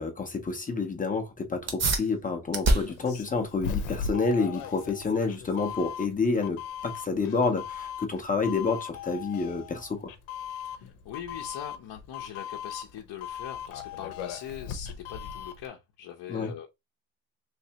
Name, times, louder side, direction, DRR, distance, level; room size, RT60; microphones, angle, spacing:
voice 1, 0.0-10.1 16.3-16.5, left 4 dB, 20° left, 0.5 m, -29 dB
sound 1, 1.6-11.6, right 2 dB, 35° right, 0.8 m, -34 dB
Doorbell, 2.9-15.7, left 7 dB, 85° left, 0.8 m, -38 dB
voice 2, 10.5-16.7, left 9 dB, 55° left, 0.7 m, -41 dB
3.3 x 3.1 x 2.8 m
cardioid pair, 155°, 46 cm